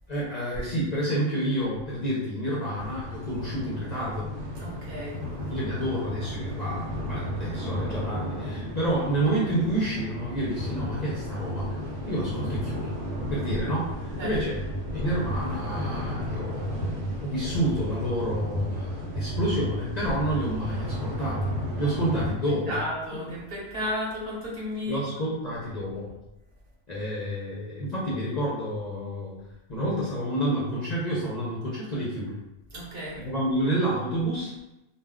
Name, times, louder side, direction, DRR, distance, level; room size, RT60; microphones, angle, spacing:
voice 1, 0.1-4.3 5.5-11.8 12.1-12.9 13.3-14.6 14.9-16.9 17.2-21.4 21.8-22.8 24.9-26.1 26.9-29.3 29.7-32.3 33.2-34.5, right 1 dB, 50° left, -6 dB, 0.6 m, -29 dB
sound 1, 2.8-22.3, equal, 85° right, 1.0 m, -33 dB
voice 2, 4.6-5.2 14.2-14.3 22.7-25.2 32.7-33.2, left 1 dB, 55° right, -6 dB, 1.0 m, -33 dB
2.3 x 2.3 x 3.4 m, 0.93 s
omnidirectional pair, 1.2 m